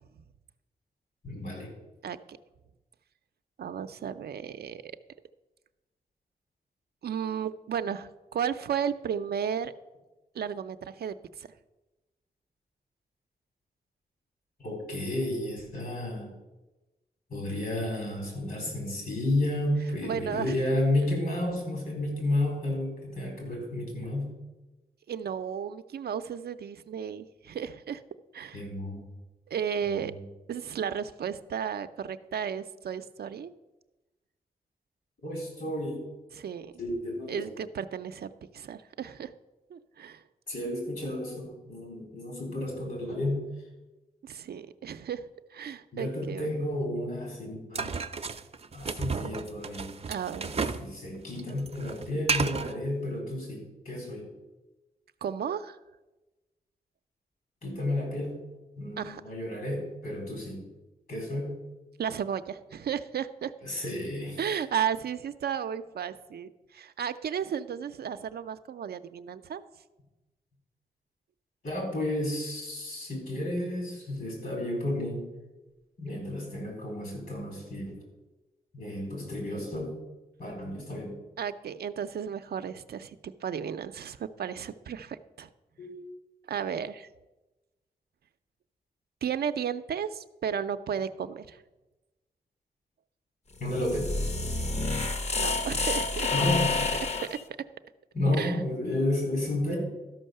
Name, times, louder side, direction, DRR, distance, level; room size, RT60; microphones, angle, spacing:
voice 1, 1.2-1.7 14.6-16.3 17.3-24.3 28.5-29.0 29.8-30.2 35.2-36.0 36.8-37.5 40.5-43.4 45.9-47.9 48.7-49.9 50.5-54.2 57.6-58.4 58.8-60.6 61.1-61.6 63.6-64.4 71.6-75.3 76.0-78.0 78.7-79.9 80.4-81.1 85.8-86.0 93.6-94.1 96.3-96.9 98.1-99.8, left 1 dB, 70° left, 1 dB, 4.2 m, -32 dB
voice 2, 3.6-4.9 7.0-9.7 10.3-11.5 20.0-20.8 25.1-28.0 28.3-28.6 29.5-30.1 30.5-33.5 36.3-36.7 37.3-39.3 39.7-40.2 44.2-45.3 45.5-46.5 50.1-50.5 55.2-55.8 59.0-59.2 62.0-63.5 64.4-69.6 81.4-85.5 86.5-87.1 89.2-91.6 95.4-96.3 97.2-97.4 98.4-98.6, right 8 dB, 80° right, 10 dB, 0.5 m, -34 dB
sound 1, 47.7-50.9 51.2-52.7, right 5 dB, 40° right, 0.6 m, -32 dB
sound 2, 93.6-97.4, left 3 dB, 45° left, 0.9 m, -29 dB
12.5 x 5.5 x 6.6 m, 1.1 s
cardioid pair, 75°, 16 cm